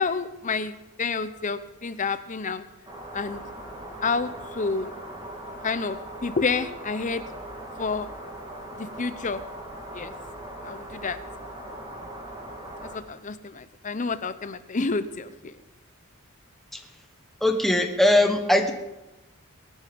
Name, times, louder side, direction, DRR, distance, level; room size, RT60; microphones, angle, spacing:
voice 1, 0.0-2.7 3.1-3.4 4.0-4.9 5.6-7.2 7.8-8.1 8.7-9.4 9.9-10.1 10.6-11.2 12.8-15.5, left 4 dB, 35° left, 12 dB, 0.8 m, -29 dB
sound 1, 2.8-13.0, right 1 dB, 20° right, 3.1 m, -40 dB
voice 2, 17.4-18.7, left 1 dB, ahead, 4 dB, 1.1 m, -20 dB
21.5 x 9.3 x 5.2 m, 0.99 s
head